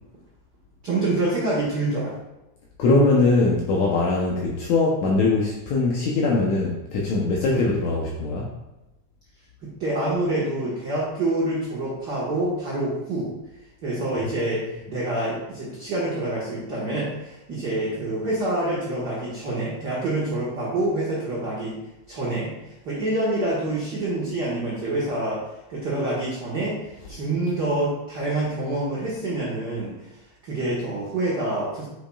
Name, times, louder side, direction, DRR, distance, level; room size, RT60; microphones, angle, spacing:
voice 1, 0.8-2.1 7.4-7.6 9.6-13.3 13.8-21.8 22.1-22.5 22.8-25.4 25.7-30.1 30.4-31.9, right 2 dB, 45° right, -7 dB, 1.4 m, -26 dB
voice 2, 2.8-8.5, left 3 dB, 75° left, -2 dB, 2.1 m, -21 dB
8.2 x 6.2 x 2.3 m, 0.97 s
omnidirectional pair, 3.5 m